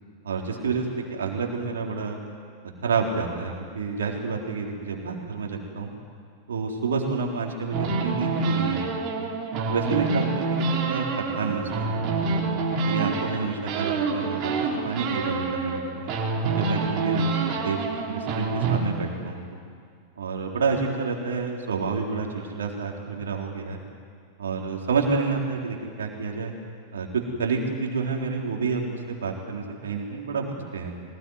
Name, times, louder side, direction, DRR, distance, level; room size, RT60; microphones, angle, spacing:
voice 1, 0.2-2.2 2.8-5.9 6.5-9.3 9.7-12.4 12.8-14.5 14.8-16.1 16.5-17.8 18.1-19.4 20.2-23.8 24.4-26.5 26.9-30.9, right 4 dB, 65° right, 0 dB, 3.9 m, -29 dB
sound 1, 7.7-13.4 13.7-15.8 16.1-18.8, right 4 dB, 40° right, 3.8 m, -27 dB
22.5 x 19.5 x 9.6 m, 2.1 s
figure-of-eight pair, 90°, 0 cm